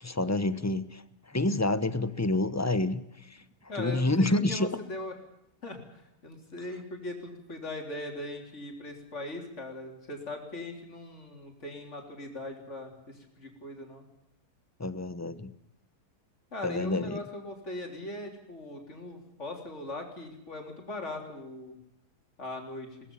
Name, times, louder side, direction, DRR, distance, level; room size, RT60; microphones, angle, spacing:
voice 1, 0.0-3.4 3.8-4.7 14.8-15.5 16.6-17.2, left 2 dB, 15° left, 13 dB, 0.6 m, -28 dB
voice 2, 3.7-5.1 5.6-14.0 16.5-21.8 22.4-23.0, left 2 dB, 45° left, 2 dB, 4.0 m, -40 dB
22.0 x 18.5 x 7.1 m, 0.85 s
omnidirectional pair, 1.7 m